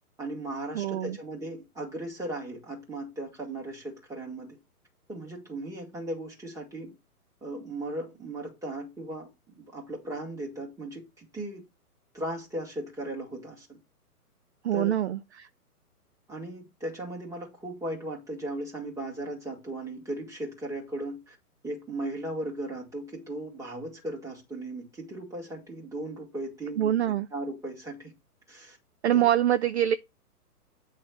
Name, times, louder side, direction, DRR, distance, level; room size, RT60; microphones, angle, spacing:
voice 1, 0.2-4.6 5.1-6.9 7.4-11.6 12.1-13.8 14.7-14.9 16.3-21.4 21.6-28.1 28.5-28.8 29.1-29.2, right 1 dB, 5° right, 2.1 m, -37 dB
voice 2, 0.7-1.2 14.6-15.5 26.8-27.3 29.0-30.0, right 11 dB, 50° right, 0.5 m, -25 dB
8.6 x 3.3 x 6.3 m
figure-of-eight pair, 130°, 46 cm